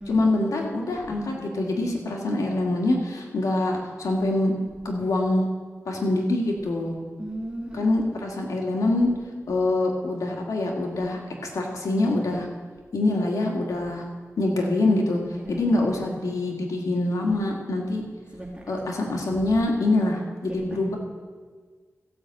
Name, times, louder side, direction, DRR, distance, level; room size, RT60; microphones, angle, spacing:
voice 1, 0.1-4.5 4.9-5.4 5.9-7.0 7.7-9.1 9.5-11.2 11.5-12.5 12.9-14.0 14.4-15.2 15.5-18.0 18.7-21.0, left 2 dB, 90° left, 0 dB, 1.8 m, -24 dB
voice 2, 7.2-7.9 15.3-15.6 18.3-18.8 20.5-20.8, right 1 dB, 15° right, -4 dB, 2.0 m, -36 dB
14.5 x 5.9 x 7.6 m, 1.5 s
cardioid pair, 60°, 6 cm